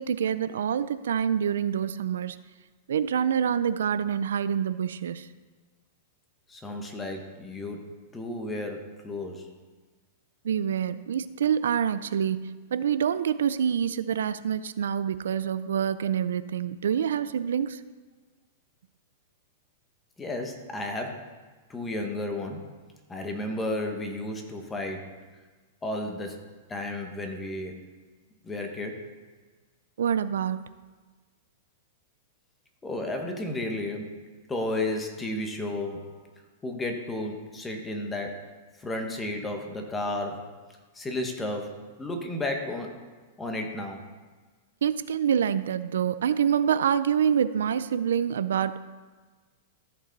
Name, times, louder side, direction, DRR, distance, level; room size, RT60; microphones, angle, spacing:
voice 1, 0.0-2.4 2.9-5.3 10.4-17.8 30.0-30.6 44.8-48.8, right 8 dB, 90° right, 14 dB, 0.4 m, -26 dB
voice 2, 6.5-7.9 8.1-9.5 20.2-21.2 21.7-22.6 23.1-25.1 25.8-26.4 26.7-27.7 28.4-29.0 32.8-36.2 36.6-38.5 38.8-40.5 40.9-43.0 43.4-44.0, left 1 dB, 10° left, 3 dB, 1.0 m, -33 dB
14.0 x 5.4 x 4.0 m, 1.4 s
supercardioid pair, 160°, 0 cm